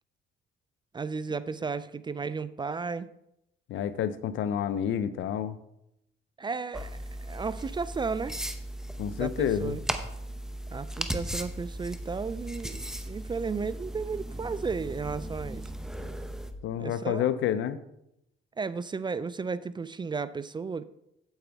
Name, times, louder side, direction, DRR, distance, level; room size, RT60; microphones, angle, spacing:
voice 1, 0.9-3.1 6.4-8.4 9.1-9.8 10.7-15.7 16.8-17.2 18.6-20.8, right 4 dB, 25° right, 16 dB, 0.3 m, -34 dB
voice 2, 3.7-5.6 9.0-9.8 16.6-17.8, left 9 dB, 75° left, 13 dB, 0.6 m, -29 dB
sound 1, 6.7-16.5, right 1 dB, 5° right, 0.7 m, -37 dB
8.9 x 8.0 x 3.4 m, 0.82 s
cardioid pair, 90°, 20 cm